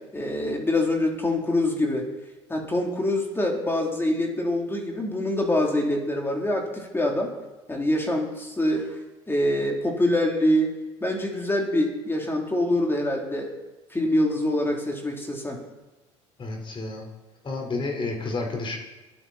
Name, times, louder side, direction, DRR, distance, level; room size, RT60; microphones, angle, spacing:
voice 1, 0.1-2.0 2.5-7.3 7.7-9.0 9.3-10.7 11.0-13.5 13.9-15.6, left 1 dB, 15° left, 0 dB, 3.6 m, -25 dB
voice 2, 16.4-17.0 17.4-18.8, left 3 dB, 35° left, 1 dB, 4.7 m, -30 dB
23.5 x 8.9 x 4.4 m, 1.1 s
hypercardioid pair, 75°, 15 cm